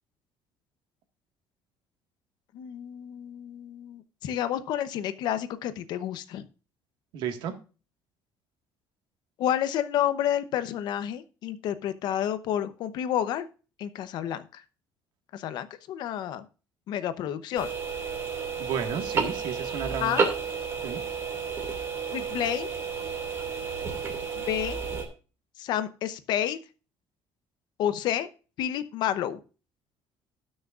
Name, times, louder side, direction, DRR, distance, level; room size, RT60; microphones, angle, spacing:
voice 1, 2.5-6.4 9.4-13.5 13.8-14.6 15.3-16.4 16.9-17.7 20.0-20.3 22.1-22.7 24.4-24.8 25.6-26.6 27.8-28.3 28.6-29.4, left 11 dB, 65° left, 12 dB, 0.8 m, -30 dB
voice 2, 7.1-7.5 18.6-20.2 20.8-21.0, right 7 dB, 75° right, 6 dB, 1.7 m, -32 dB
sound 1, 17.6-25.0, right 5 dB, 35° right, 2.3 m, -31 dB
18.5 x 6.4 x 2.5 m, 0.34 s
cardioid pair, 170°, 8 cm